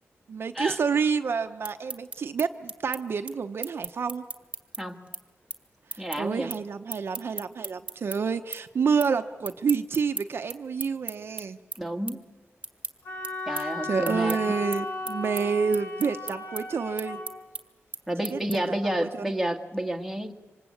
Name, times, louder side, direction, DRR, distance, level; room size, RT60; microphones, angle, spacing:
voice 1, 0.3-4.2 5.9-11.6 13.5-17.2 18.3-19.2, right 5 dB, 55° right, 7 dB, 0.9 m, -29 dB
sound 1, 1.6-8.2 8.5-9.1 9.4-18.8, right 3 dB, 25° right, 1.6 m, -38 dB
voice 2, 6.0-6.5 11.8-12.2 13.5-14.4 18.1-20.3, right 1 dB, ahead, 2 dB, 1.7 m, -30 dB
Wind instrument woodwind instrument, 13.1-17.3, left 3 dB, 80° left, 7.1 m, -35 dB
27.0 x 25.5 x 8.6 m, 1.2 s
wide cardioid pair, 140°, 5 cm